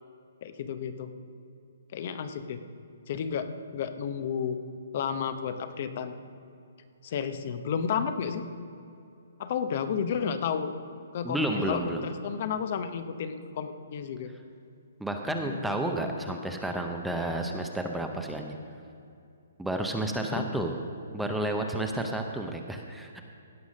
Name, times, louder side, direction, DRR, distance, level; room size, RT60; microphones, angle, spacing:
voice 1, 0.4-1.1 1.9-2.6 3.1-4.6 4.9-6.1 7.0-8.4 9.4-10.7 11.1-14.3 15.2-15.6 20.3-20.5, left 7 dB, 40° left, 10 dB, 0.7 m, -32 dB
voice 2, 11.2-12.1 15.0-18.6 19.6-20.7 21.1-23.2, right 1 dB, ahead, 3 dB, 0.6 m, -31 dB
16.5 x 5.6 x 6.3 m, 2.5 s
hypercardioid pair, 165°, 0 cm